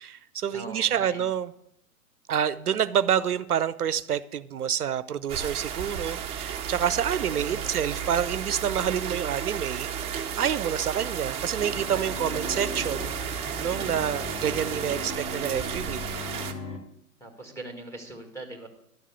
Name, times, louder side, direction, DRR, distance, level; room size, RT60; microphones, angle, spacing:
voice 1, 0.0-1.5 2.3-10.1 10.4-13.1 13.6-16.0, right 9 dB, 75° right, 17 dB, 0.6 m, -28 dB
voice 2, 0.5-1.2 7.1-7.7 17.2-18.7, right 2 dB, 5° left, 4 dB, 1.8 m, -41 dB
sound 1, 5.3-16.5, right 7 dB, 15° right, 0.7 m, -33 dB
sound 2, 11.6-16.8, left 3 dB, 65° left, 2.2 m, -39 dB
11.5 x 7.3 x 6.7 m, 0.77 s
figure-of-eight pair, 110°, 45 cm